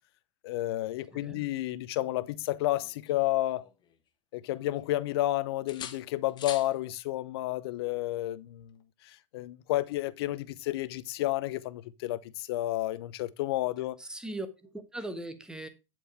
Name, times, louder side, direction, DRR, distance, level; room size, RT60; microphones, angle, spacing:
voice 1, 0.4-3.6 4.3-8.8 9.0-14.0, left 16 dB, 50° left, 0.8 m, -31 dB
voice 2, 1.1-1.4 14.0-15.7, right 1 dB, 5° right, 1.3 m, -39 dB
sound 1, 2.5-4.1 4.5-5.3 5.7-6.7 8.6-8.8, left 9 dB, 25° left, 1.6 m, -45 dB
11.5 x 4.9 x 4.7 m
figure-of-eight pair, 90°, 17 cm